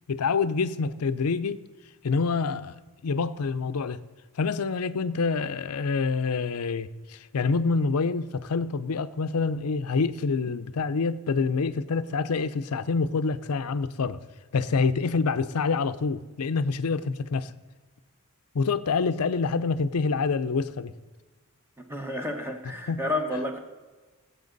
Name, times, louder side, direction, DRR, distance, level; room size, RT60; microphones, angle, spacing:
voice 1, 0.1-1.6 2.0-2.7 3.0-4.0 4.4-14.2 14.5-17.5 18.5-20.9 22.9-23.0, left 4 dB, 90° left, 13 dB, 0.5 m, -26 dB
voice 2, 21.9-23.6, left 1 dB, 10° right, 4 dB, 1.2 m, -30 dB
18.0 x 8.0 x 4.0 m, 1.3 s
head